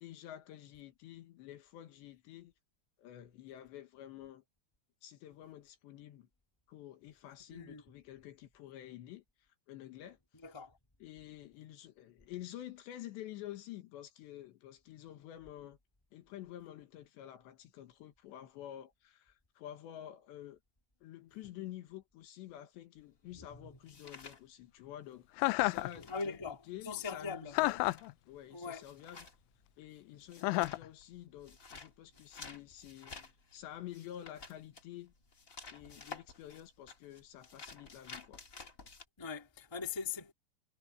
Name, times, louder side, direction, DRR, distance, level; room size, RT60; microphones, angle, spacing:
voice 1, 0.0-2.5 3.0-4.4 5.0-6.3 6.7-9.2 9.7-10.2 11.0-15.8 16.1-20.6 21.0-25.3 25.6-27.8 28.3-29.3 29.8-35.1 35.7-38.4, left 12 dB, 70° left, 3.5 m, -49 dB
voice 2, 7.5-7.8 10.3-10.8 23.4-23.8 25.9-27.6 28.5-28.8 35.9-36.0 39.2-40.3, left 5 dB, 10° left, 1.5 m, -41 dB
sound 1, 23.0-25.1 25.4-39.0, left 4 dB, 50° left, 0.9 m, -53 dB
Chuckle chortle, 25.4-25.9 27.5-28.1 30.4-30.9, left 21 dB, 90° left, 3.1 m, -30 dB
omnidirectional pair, 5.5 m